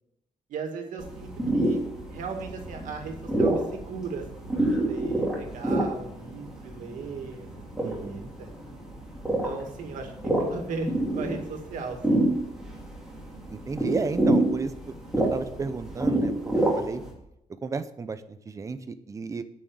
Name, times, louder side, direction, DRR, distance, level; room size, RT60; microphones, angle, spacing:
voice 1, 0.5-1.8 2.1-4.4 4.7-7.5 7.8-8.5 9.4-10.9 11.2-12.2, right 4 dB, 85° right, 4 dB, 2.1 m, -37 dB
sound 1, 1.0-17.1, right 1 dB, 5° right, 2.6 m, -28 dB
voice 2, 7.8-8.3 13.5-14.7 15.1-17.0 17.6-19.4, right 4 dB, 25° right, 11 dB, 0.6 m, -33 dB
9.5 x 6.4 x 6.8 m, 0.82 s
wide cardioid pair, 175°, 13 cm